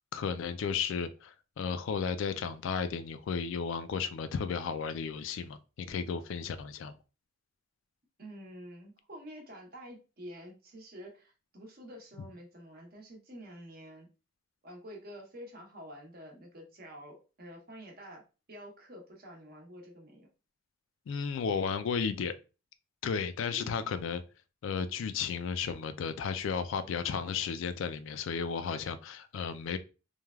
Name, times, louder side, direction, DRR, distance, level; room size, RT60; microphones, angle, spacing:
voice 1, 0.1-6.9 21.1-22.3 23.0-24.2 24.6-29.8, left 6 dB, 70° left, 0.3 m, -34 dB
voice 2, 8.2-14.1 14.6-18.2 18.5-20.3 23.5-23.8, equal, 45° right, 0.8 m, -48 dB
3.1 x 2.3 x 2.2 m
head